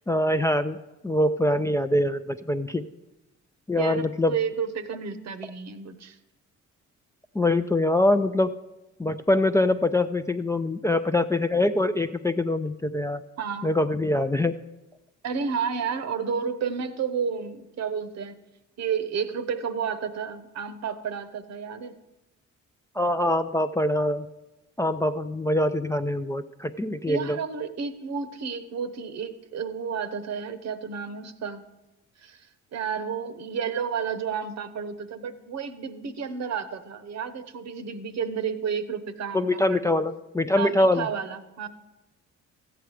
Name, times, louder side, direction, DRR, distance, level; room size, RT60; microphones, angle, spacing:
voice 1, 0.1-0.8 1.0-2.8 3.7-4.3 7.3-8.5 9.0-13.2 13.6-14.5 23.0-24.3 24.8-27.4 39.3-41.1, left 1 dB, 10° left, 7 dB, 0.4 m, -24 dB
voice 2, 3.8-6.2 13.4-13.8 15.2-18.4 18.8-21.9 27.1-31.6 32.2-32.5 32.7-39.9 40.6-41.7, right 6 dB, 60° right, 12 dB, 0.9 m, -31 dB
14.0 x 8.0 x 4.9 m, 1.0 s
cardioid pair, 90°, 30 cm